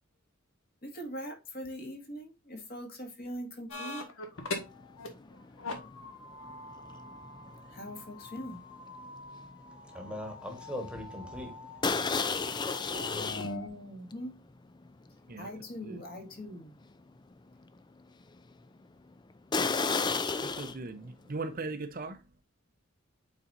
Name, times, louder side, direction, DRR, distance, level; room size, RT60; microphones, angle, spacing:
voice 1, 0.8-4.0 7.6-8.6 13.5-14.4 15.4-16.8, equal, 45° left, 2.0 m, -42 dB
sound 1, 3.7-5.1 5.3-13.7, left 2 dB, 70° left, 1.7 m, -43 dB
sound 2, 4.6-4.9 5.2-9.8 10.1-10.4 10.8-10.9 11.8-13.5 14.1-14.2 14.8-14.9 15.4-15.5 19.5-20.8, left 4 dB, 20° left, 0.4 m, -32 dB
voice 2, 9.9-11.7, left 1 dB, 5° right, 1.4 m, -41 dB
voice 3, 19.9-22.2, right 3 dB, 40° right, 0.6 m, -39 dB
8.5 x 4.2 x 2.6 m
head